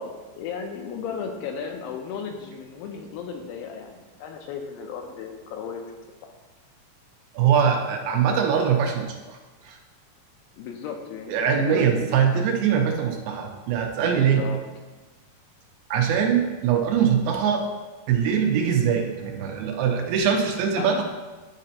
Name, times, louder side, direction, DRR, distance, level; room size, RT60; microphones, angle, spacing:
voice 1, 0.0-5.9 6.2-6.3 10.6-12.1 13.9-14.6 20.8-21.0, left 6 dB, 80° left, 3 dB, 2.3 m, -35 dB
voice 2, 7.3-9.4 9.6-9.8 11.3-14.4 15.9-17.6 18.1-21.0, right 7 dB, 80° right, 2 dB, 2.3 m, -22 dB
9.9 x 4.1 x 2.8 m, 1.2 s
omnidirectional pair, 4.3 m